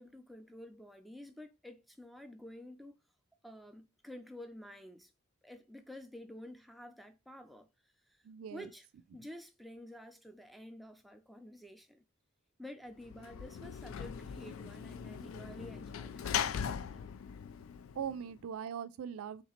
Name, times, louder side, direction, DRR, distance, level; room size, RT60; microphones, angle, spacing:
voice 1, 0.0-3.0 3.4-5.1 5.4-7.7 8.1-8.2 8.5-8.9 9.1-12.0 12.6-17.1, left 1 dB, ahead, 0.5 m, -50 dB
voice 2, 8.2-8.7 18.0-19.4, right 7 dB, 85° right, 0.4 m, -40 dB
Sliding door / Slam, 13.0-18.4, left 8 dB, 70° left, 0.3 m, -40 dB
3.2 x 2.9 x 4.2 m
head